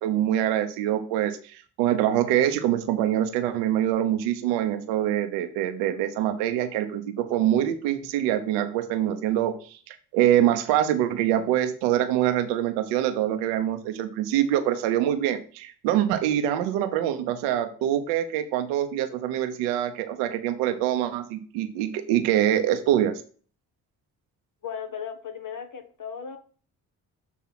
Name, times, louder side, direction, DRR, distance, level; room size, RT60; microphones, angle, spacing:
voice 1, 0.0-23.2, right 11 dB, 90° right, 0.9 m, -25 dB
voice 2, 24.6-26.4, left 7 dB, 45° left, 1.5 m, -36 dB
7.1 x 3.6 x 5.9 m
supercardioid pair, 50°, 41 cm